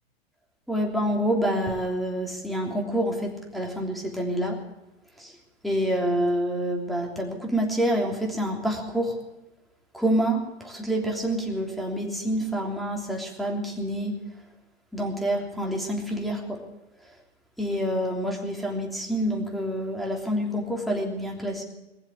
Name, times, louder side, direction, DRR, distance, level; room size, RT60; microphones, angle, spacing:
voice 1, 0.7-4.6 5.2-5.4 5.6-9.2 9.9-14.2 14.9-16.6 17.6-21.6, equal, ahead, -1 dB, 3.2 m, -27 dB
21.0 x 7.3 x 9.4 m, 1.0 s
hypercardioid pair, 105°, 32 cm